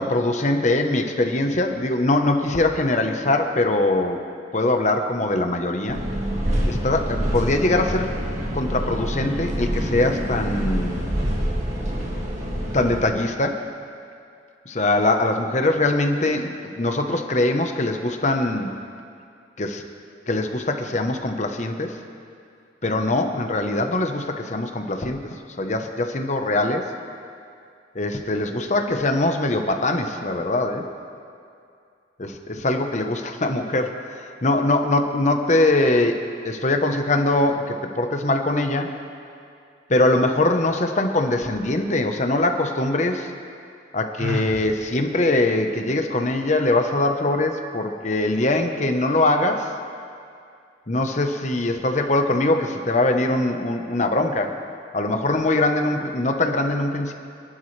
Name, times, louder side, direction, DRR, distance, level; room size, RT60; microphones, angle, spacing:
voice 1, 0.0-4.2 4.5-6.0 6.7-8.2 8.5-11.1 12.7-13.7 14.7-18.7 19.6-19.8 20.3-22.0 22.8-26.9 27.9-30.9 32.2-38.9 39.9-43.3 43.9-49.7 50.9-54.6 54.9-57.1, left 2 dB, 40° left, 5 dB, 1.1 m, -22 dB
sound 1, 5.9-13.0, equal, 40° right, 2.2 m, -26 dB
Sigh, 44.2-44.7, left 1 dB, 90° right, 1.3 m, -28 dB
26.5 x 11.5 x 3.4 m, 2.4 s
head